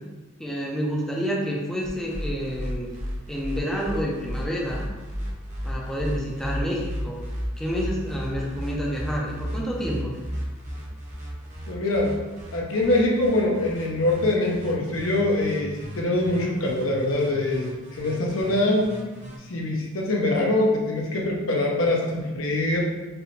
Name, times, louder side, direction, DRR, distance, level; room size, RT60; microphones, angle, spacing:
voice 1, 0.4-2.9 3.3-4.9 5.6-7.2 7.6-10.2, equal, ahead, -3 dB, 0.5 m, -29 dB
sound 1, 1.8-19.4, equal, 35° right, 0.9 m, -35 dB
voice 2, 11.7-12.1 12.5-17.7 18.0-19.0 19.5-22.8, left 2 dB, 75° left, -2 dB, 0.8 m, -23 dB
4.6 x 2.6 x 3.2 m, 1.2 s
head